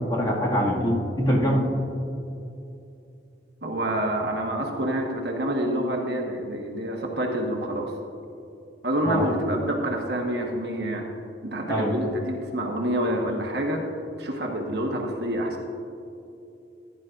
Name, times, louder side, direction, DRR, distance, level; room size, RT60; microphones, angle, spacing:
voice 1, 0.0-1.6 9.0-9.3 11.7-11.9, equal, 25° left, -5 dB, 2.1 m, -23 dB
voice 2, 3.6-7.9 8.8-11.1 11.4-13.8 14.2-15.6, right 1 dB, 60° right, 1 dB, 1.4 m, -27 dB
15.5 x 10.5 x 2.6 m, 2.7 s
head